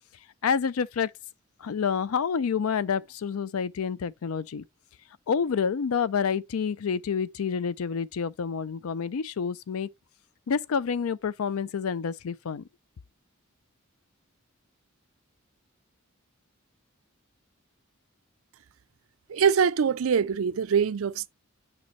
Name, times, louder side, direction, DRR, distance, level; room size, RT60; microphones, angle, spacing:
voice 1, 0.4-1.1 1.6-4.6 5.3-9.9 10.5-12.6, left 6 dB, 90° left, 0.4 m, -28 dB
voice 2, 19.3-21.3, right 7 dB, 75° right, 0.5 m, -23 dB
6.8 x 5.3 x 3.1 m
head